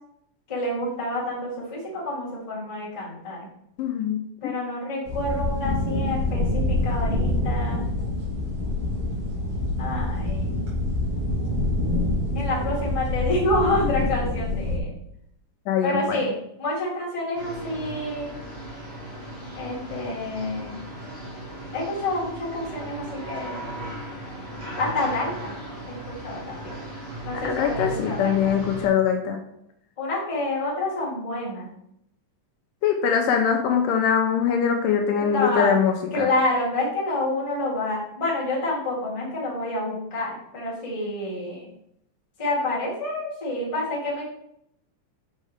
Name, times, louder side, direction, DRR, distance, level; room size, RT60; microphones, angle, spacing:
voice 1, 0.5-3.4 4.4-7.8 9.8-10.6 12.3-14.9 15.8-18.3 19.5-20.8 21.7-23.6 24.8-25.5 25.9-26.7 27.2-28.5 30.0-31.7 35.1-35.8 36.1-41.6 42.4-44.2, left 2 dB, 15° left, -6 dB, 1.2 m, -28 dB
voice 2, 3.8-4.2 14.0-14.1 15.7-16.2 27.3-29.4 32.8-36.3, left 7 dB, 80° left, 3 dB, 2.1 m, -22 dB
sound 1, 5.1-14.8, left 2 dB, 45° right, 2.2 m, -26 dB
sound 2, 17.3-28.9, right 1 dB, 25° right, 1.6 m, -37 dB
6.3 x 5.4 x 3.6 m, 0.76 s
omnidirectional pair, 4.1 m